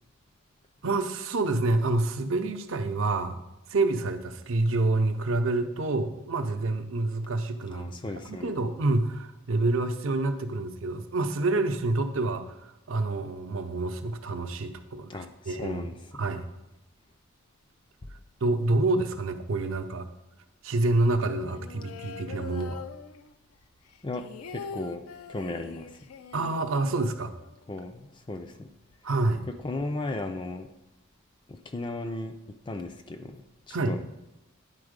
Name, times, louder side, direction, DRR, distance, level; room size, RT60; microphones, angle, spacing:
voice 1, 0.8-3.4 3.7-7.9 8.2-12.6 12.9-15.9 16.1-16.4 18.4-20.1 20.6-22.8 26.3-27.3 29.0-29.4 33.7-34.0, right 2 dB, 65° right, 7 dB, 0.6 m, -27 dB
voice 2, 7.7-8.5 15.1-16.2 24.0-25.0 25.3-25.9 27.7-28.7 29.6-30.7 31.5-32.4 32.7-33.4 33.7-34.0, left 2 dB, 20° left, 7 dB, 0.4 m, -36 dB
sound 1, 21.4-23.5 23.8-27.8 28.1-28.2 28.4-29.0, left 5 dB, 80° left, 0.4 m, -43 dB
9.8 x 3.9 x 5.1 m, 0.94 s
head